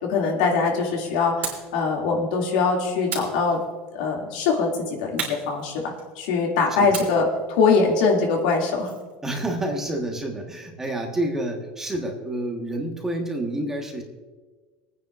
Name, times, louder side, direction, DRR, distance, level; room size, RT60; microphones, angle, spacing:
voice 1, 0.0-3.6 3.9-8.9, left 4 dB, 90° left, -1 dB, 2.5 m, -22 dB
sound 1, 1.4-1.8 3.1-4.0 5.2-6.3 6.9-9.1, right 5 dB, 35° right, 3.2 m, -35 dB
voice 2, 9.2-14.0, right 1 dB, 10° right, 1 dB, 1.4 m, -29 dB
27.0 x 9.5 x 2.5 m, 1.3 s
cardioid pair, 155°, 4 cm